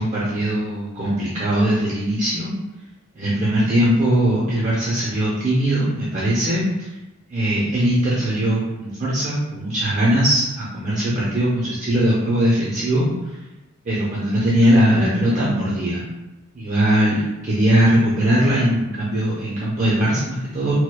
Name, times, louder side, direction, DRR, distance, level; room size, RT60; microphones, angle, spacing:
voice 1, 0.0-2.5 3.2-6.9 7.3-13.4 13.8-16.0 16.5-20.8, right 1 dB, 35° right, -6 dB, 0.5 m, -20 dB
4.4 x 2.1 x 2.2 m, 1.0 s
head